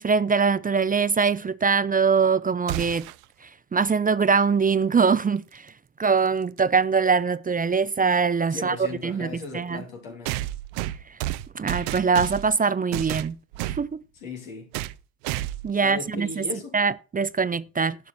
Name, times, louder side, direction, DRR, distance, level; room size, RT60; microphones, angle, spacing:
voice 1, 0.0-3.1 3.7-5.7 6.0-8.8 9.0-9.8 11.5-13.4 13.7-14.0 15.6-16.4 16.7-18.0, right 5 dB, 20° right, 0.6 m, -23 dB
sound 1, 2.7-3.2 5.4-5.5 6.6-6.7 10.3-12.6 12.9-13.9 14.7-15.0 15.2-15.7, right 15 dB, 80° right, 0.6 m, -31 dB
voice 2, 8.5-10.5 14.1-14.7 15.8-16.8, left 3 dB, 85° left, 3.0 m, -37 dB
10.5 x 5.8 x 6.3 m
hypercardioid pair, 55°, 39 cm